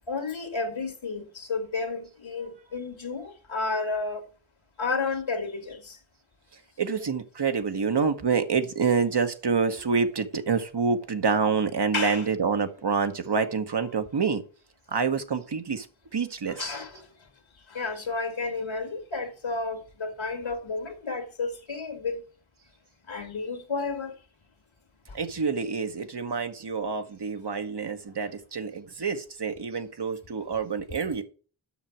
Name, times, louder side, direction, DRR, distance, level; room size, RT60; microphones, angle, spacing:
voice 1, 0.1-4.2 4.8-6.0 11.9-12.2 16.6-17.0 17.7-22.2 23.1-24.1, left 3 dB, 75° left, 2.0 m, -31 dB
voice 2, 6.8-14.4 14.9-15.9 16.1-16.6 25.1-31.2, right 5 dB, 60° right, 1.1 m, -27 dB
7.3 x 6.1 x 6.0 m
cardioid pair, 50°, 47 cm